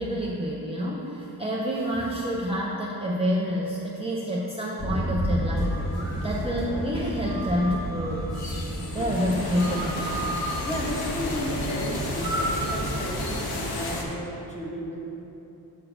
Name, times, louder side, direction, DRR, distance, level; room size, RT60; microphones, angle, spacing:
voice 1, 0.0-8.7 8.9-10.4 12.2-12.5, equal, 15° right, -3 dB, 0.4 m, -28 dB
sound 1, 4.8-13.5, equal, 40° left, 1.5 m, -32 dB
sound 2, 5.5-6.3 7.2-8.4 9.4-10.9, right 2 dB, ahead, 1.2 m, -36 dB
sound 3, 5.6-14.0, left 2 dB, 85° left, 1.1 m, -34 dB
voice 2, 10.6-15.0, equal, 20° left, -4 dB, 1.1 m, -33 dB
6.0 x 4.9 x 6.3 m, 3.0 s
wide cardioid pair, 165°, 37 cm